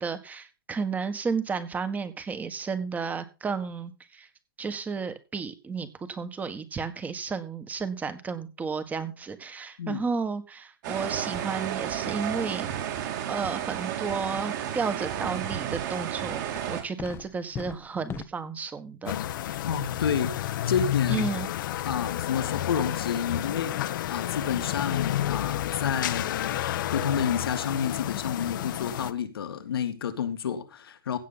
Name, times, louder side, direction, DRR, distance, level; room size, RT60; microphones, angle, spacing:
voice 1, 0.0-4.3 4.6-12.7 13.3-19.2 19.4-19.6 21.1-21.5, right 5 dB, 15° right, 1.6 m, -32 dB
sound 1, 10.8-16.8, right 10 dB, 55° right, 3.6 m, -32 dB
sound 2, 14.8-15.0 15.3-15.8 16.2-18.2, left 9 dB, 20° left, 1.0 m, -40 dB
sound 3, 19.1-29.1, left 12 dB, 60° left, 1.1 m, -30 dB
voice 2, 19.6-20.4 20.7-21.3 21.9-26.6 26.9-31.2, left 7 dB, 80° left, 1.9 m, -30 dB
16.0 x 7.5 x 4.0 m
hypercardioid pair, 135°, 12 cm